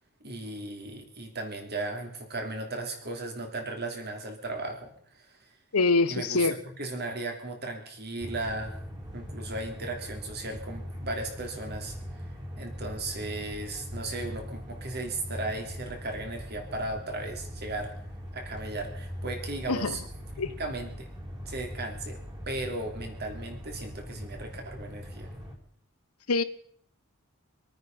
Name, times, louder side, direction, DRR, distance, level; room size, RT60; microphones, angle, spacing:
voice 1, 0.2-5.5 6.1-8.8 9.1-12.2 12.6-17.9 18.3-20.0 20.4-21.1 21.4-22.2 22.5-25.3, right 2 dB, 50° right, 3.2 m, -36 dB
voice 2, 5.7-6.6 19.7-20.0 20.4-20.6 26.3-26.4, left 3 dB, 80° left, 1.0 m, -24 dB
sound 1, 8.2-25.6, equal, 20° right, 3.5 m, -41 dB
25.0 x 9.4 x 5.5 m
head